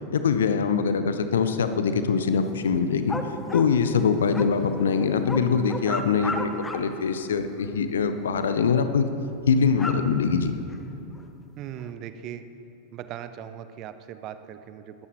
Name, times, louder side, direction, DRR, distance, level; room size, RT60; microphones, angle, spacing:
voice 1, 0.1-3.2 3.5-9.1 9.5-10.5, left 6 dB, 65° left, 9 dB, 0.8 m, -23 dB
sound 1, 2.4-7.0 7.3-7.8 8.4-8.5 8.8-8.9 9.3-11.2 11.8-11.9, left 2 dB, 10° left, 0.9 m, -35 dB
voice 2, 11.6-12.4 12.9-15.1, right 10 dB, 35° right, 11 dB, 0.7 m, -39 dB
19.5 x 14.0 x 3.2 m, 2.8 s
figure-of-eight pair, 90°, 0 cm